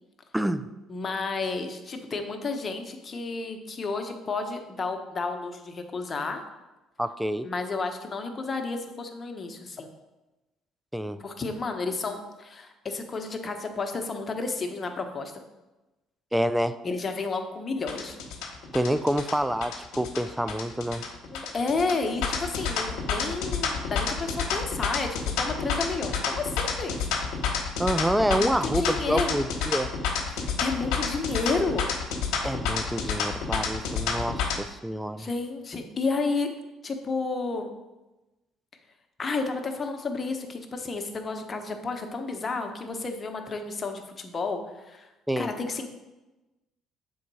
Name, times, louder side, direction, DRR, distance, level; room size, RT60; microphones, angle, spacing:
voice 1, 0.3-0.6 7.0-7.5 10.9-11.2 16.3-16.8 18.7-21.0 27.8-29.9 32.4-35.3 45.3-45.5, equal, 5° right, 12 dB, 0.4 m, -27 dB
voice 2, 0.9-6.4 7.4-9.9 11.2-15.3 16.8-18.2 21.3-27.1 28.3-29.3 30.3-31.9 35.2-36.5 36.8-37.7 39.2-45.1 45.4-45.9, left 3 dB, 35° left, 5 dB, 1.0 m, -31 dB
sound 1, 17.9-34.6, left 6 dB, 75° left, 1.0 m, -29 dB
7.1 x 3.9 x 4.8 m, 1.1 s
supercardioid pair, 75°, 0 cm